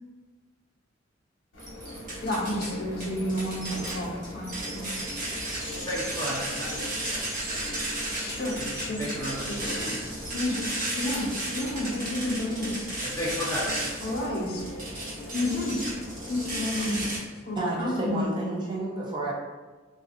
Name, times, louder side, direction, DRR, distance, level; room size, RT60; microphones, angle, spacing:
sound 1, 1.5-17.2, equal, 70° left, 0.9 m, -40 dB
sound 2, 1.6-2.7 3.0-17.2, right 1 dB, 45° right, 1.0 m, -34 dB
voice 1, 2.2-4.9 8.1-9.0 9.5-9.9 10.3-10.6 10.9-12.8 14.0-14.6 15.3-15.8 16.3-17.0 17.5-18.4, left 1 dB, 55° left, -3 dB, 0.6 m, -31 dB
voice 2, 5.9-7.7 8.2-8.3 8.6-8.7 9.0-9.9 13.0-14.4, equal, 15° left, -6 dB, 0.6 m, -34 dB
sound 3, 8.2-8.3 8.9-10.8 12.0-12.2 12.9-13.0 13.2-13.6 14.4-15.3 16.0-16.3 16.8-18.2, equal, 75° right, 1.0 m, -47 dB
voice 3, 17.6-19.3, right 2 dB, 25° right, -5 dB, 0.5 m, -31 dB
2.5 x 2.5 x 2.5 m, 1.3 s
head